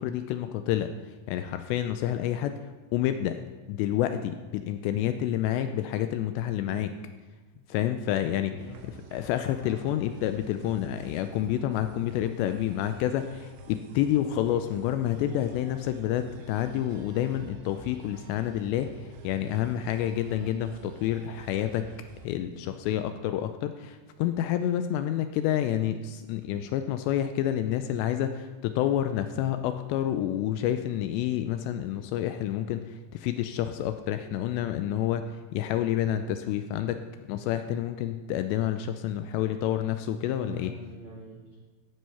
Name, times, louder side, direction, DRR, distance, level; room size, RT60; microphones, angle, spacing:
voice 1, 0.0-2.6 2.9-3.4 3.7-7.0 7.7-21.9 22.2-40.8, left 11 dB, 85° left, 8 dB, 2.6 m, -29 dB
sound 1, 8.6-22.3, right 3 dB, 80° right, 3.2 m, -49 dB
voice 2, 40.4-41.6, right 2 dB, 50° right, -5 dB, 1.6 m, -44 dB
14.5 x 6.2 x 5.6 m, 1.4 s
omnidirectional pair, 5.3 m